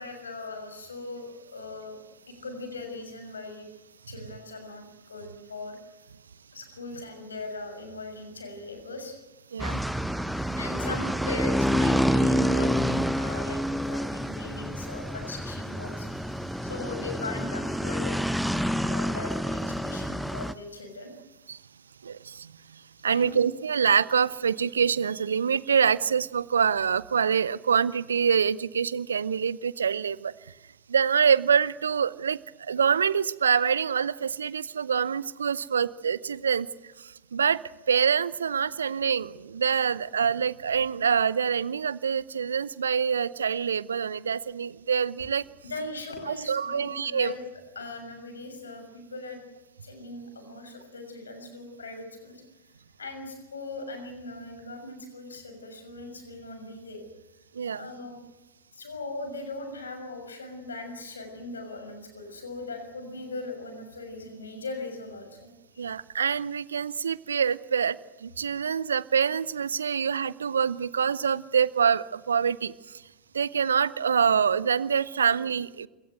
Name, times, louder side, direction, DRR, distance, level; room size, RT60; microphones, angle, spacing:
voice 1, 0.0-2.0 2.3-3.7 4.1-5.8 6.5-9.2 10.3-16.2 16.6-18.2 18.8-21.1 23.1-23.4 45.6-47.4 47.7-49.4 49.8-52.4 53.0-57.0 57.7-58.2 58.7-65.9, left 3 dB, 70° left, 6 dB, 6.3 m, -39 dB
sound 1, 9.6-20.5, equal, ahead, 0.8 m, -28 dB
voice 2, 22.0-22.5 23.0-30.3 30.9-36.7 37.0-37.6 37.9-45.4 46.3-47.3 57.5-57.9 65.8-73.0 73.3-75.9, right 7 dB, 70° right, 20 dB, 0.8 m, -25 dB
26.5 x 18.5 x 8.0 m, 1.1 s
figure-of-eight pair, 90°, 0 cm